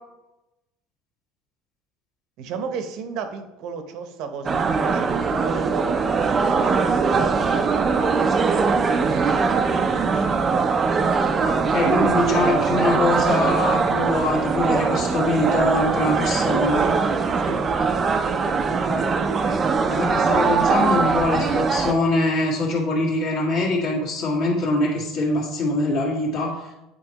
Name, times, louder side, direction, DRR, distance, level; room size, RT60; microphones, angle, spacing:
voice 1, 2.4-8.1 8.4-10.7 16.8-17.0 17.3-17.6, right 6 dB, 55° right, 7 dB, 0.8 m, -34 dB
sound 1, 4.5-21.9, right 4 dB, 25° right, 0.4 m, -21 dB
voice 2, 11.4-16.8 18.9-19.6 19.9-26.7, left 2 dB, 55° left, -3 dB, 1.7 m, -24 dB
8.9 x 4.4 x 2.9 m, 0.96 s
cardioid pair, 155°, 0 cm